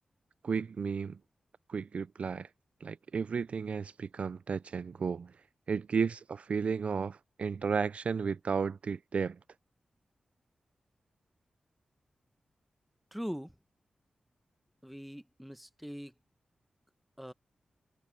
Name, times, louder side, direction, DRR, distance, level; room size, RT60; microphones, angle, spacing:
voice 1, 0.4-1.2 1.7-2.5 2.8-5.3 5.7-9.4, right 5 dB, 65° right, 0.4 m, -33 dB
voice 2, 13.1-13.5 14.8-16.1 17.2-17.3, equal, ahead, 1.5 m, -41 dB
cardioid pair, 65°, 2 cm